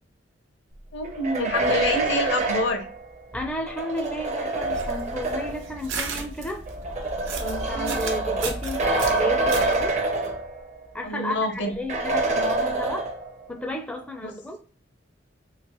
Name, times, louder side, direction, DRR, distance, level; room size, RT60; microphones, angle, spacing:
voice 1, 0.9-2.9 7.7-8.0 11.0-11.7 14.2-14.3, left 1 dB, 65° left, 4 dB, 0.7 m, -27 dB
sound 1, 1.0-5.7 6.7-10.8 11.2-11.3 11.9-13.4, right 2 dB, 40° right, 0.6 m, -26 dB
voice 2, 3.3-6.6 7.4-10.0 10.9-13.1 13.5-14.6, left 1 dB, 5° left, 2 dB, 0.4 m, -33 dB
sound 2, 4.5-9.9, right 4 dB, 85° right, 0.7 m, -35 dB
3.0 x 2.8 x 2.9 m, 0.40 s
head